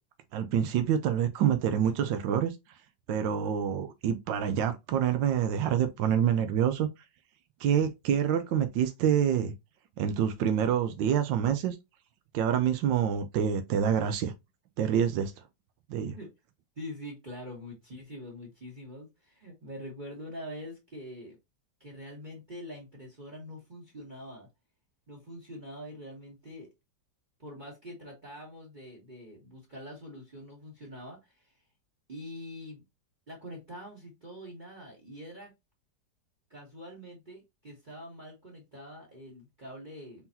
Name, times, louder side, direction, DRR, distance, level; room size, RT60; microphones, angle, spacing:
voice 1, 0.3-2.5 3.1-6.9 7.6-9.5 10.0-11.8 12.3-14.3 14.8-15.3 15.9-16.2, right 8 dB, 85° right, 1.4 m, -27 dB
voice 2, 16.7-21.4 21.8-24.5 25.1-26.7 27.4-31.5 32.1-32.8 33.3-35.5 36.5-40.3, equal, 30° right, 1.4 m, -44 dB
4.3 x 3.8 x 2.7 m
omnidirectional pair, 1.9 m